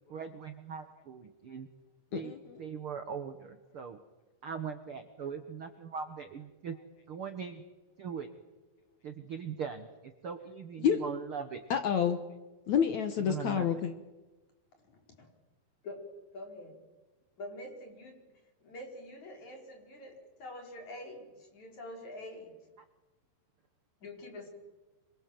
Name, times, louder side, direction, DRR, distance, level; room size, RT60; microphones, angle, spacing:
voice 1, 0.1-1.7 2.1-2.3 2.6-4.0 4.4-6.8 7.1-7.6 8.0-8.3 9.0-9.9 10.2-11.6 13.2-13.8, right 6 dB, 75° right, 8 dB, 1.2 m, -40 dB
voice 2, 2.1-2.6 10.8-11.0 11.7-12.2 12.7-13.9, left 8 dB, 65° left, 8 dB, 2.1 m, -29 dB
voice 3, 16.3-16.8 17.4-18.1 18.6-22.5 24.0-24.5, left 1 dB, 45° left, 2 dB, 6.1 m, -45 dB
26.5 x 24.5 x 7.8 m, 1.1 s
omnidirectional pair, 4.5 m